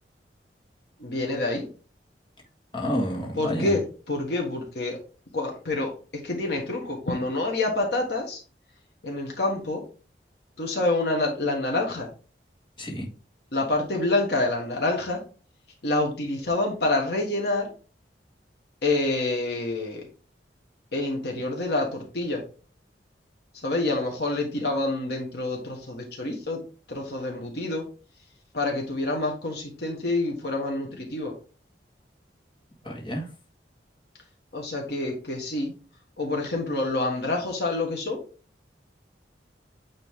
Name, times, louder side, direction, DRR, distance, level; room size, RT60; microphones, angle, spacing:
voice 1, 1.0-1.7 3.4-3.8 4.1-5.0 5.3-5.9 6.2-8.4 9.0-9.8 10.6-12.1 13.5-15.2 15.8-17.7 18.8-20.0 20.9-22.4 23.5-26.6 26.9-27.8 28.5-31.3 34.5-35.7 36.2-38.2, left 2 dB, 65° left, 0 dB, 1.4 m, -27 dB
voice 2, 2.7-3.7 12.8-13.1 32.8-33.3, equal, 30° left, -2 dB, 1.7 m, -29 dB
9.0 x 3.2 x 3.5 m, 0.37 s
head